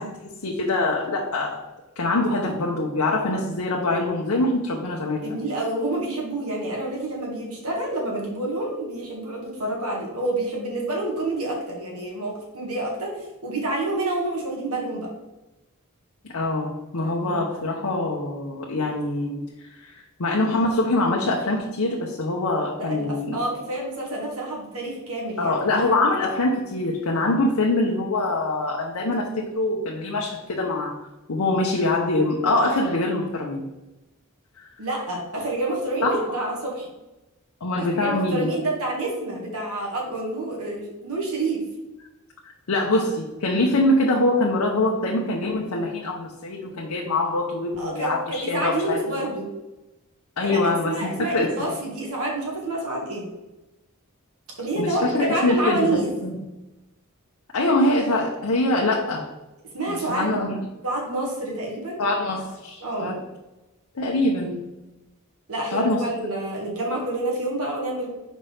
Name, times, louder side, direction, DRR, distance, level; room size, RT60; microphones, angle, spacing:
voice 1, 0.0-1.7 2.0-5.2 16.2-19.4 19.8-23.4 25.4-31.0 31.3-33.7 34.6-34.7 36.0-36.4 37.6-38.5 42.7-49.0 50.4-51.6 54.8-56.4 57.5-59.3 59.9-60.7 62.0-63.2 64.0-64.7 65.7-66.0, left 2 dB, 85° left, -1 dB, 0.8 m, -24 dB
voice 2, 5.2-15.1 17.0-17.4 22.8-25.6 34.8-36.9 37.8-41.6 47.8-49.5 50.4-53.3 54.6-56.1 59.7-60.4 60.8-62.0 62.8-63.1 65.5-68.1, right 2 dB, 90° right, -2 dB, 2.0 m, -28 dB
5.6 x 5.1 x 3.4 m, 1.0 s
head